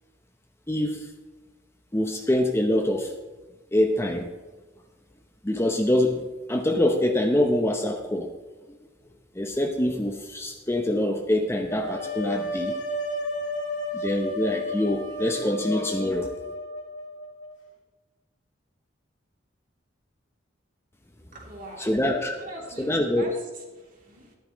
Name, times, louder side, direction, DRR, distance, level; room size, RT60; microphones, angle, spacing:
voice 1, 0.7-1.1 1.9-3.1 3.7-4.3 5.4-8.3 9.3-12.8 13.9-16.3 21.8-22.5 22.8-23.3, left 1 dB, 15° left, 4 dB, 0.8 m, -25 dB
sound 1, 11.7-17.6, left 1 dB, 85° left, 2.1 m, -32 dB
voice 2, 21.3-21.9 22.4-24.3, right 1 dB, 45° right, -1 dB, 3.0 m, -42 dB
13.5 x 11.5 x 3.1 m, 1.3 s
head